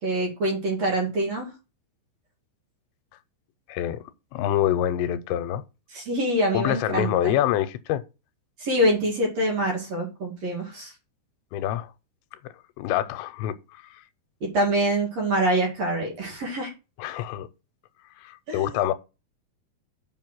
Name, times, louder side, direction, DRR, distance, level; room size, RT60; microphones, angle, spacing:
voice 1, 0.0-1.5 5.9-7.3 8.6-10.9 14.4-16.7 18.5-18.8, right 1 dB, 45° right, 2.9 m, -25 dB
voice 2, 3.7-4.0 4.3-5.6 6.5-8.0 11.5-11.9 12.8-14.0 17.0-17.5 18.2-18.9, left 12 dB, 85° left, 2.8 m, -26 dB
7.3 x 5.6 x 6.1 m
omnidirectional pair, 5.1 m